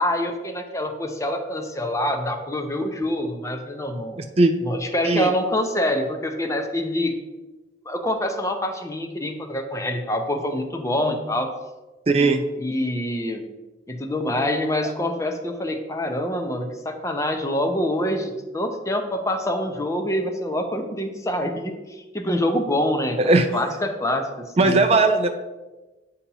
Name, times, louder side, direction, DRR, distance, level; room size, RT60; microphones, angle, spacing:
voice 1, 0.0-4.2 4.6-7.1 7.8-11.5 12.6-13.4 13.9-24.8, left 1 dB, 15° left, 5 dB, 0.6 m, -26 dB
voice 2, 12.1-12.4 14.8-14.9 23.2-23.5 24.6-25.3, right 3 dB, 35° right, 7 dB, 0.4 m, -18 dB
8.4 x 2.8 x 5.4 m, 1.1 s
head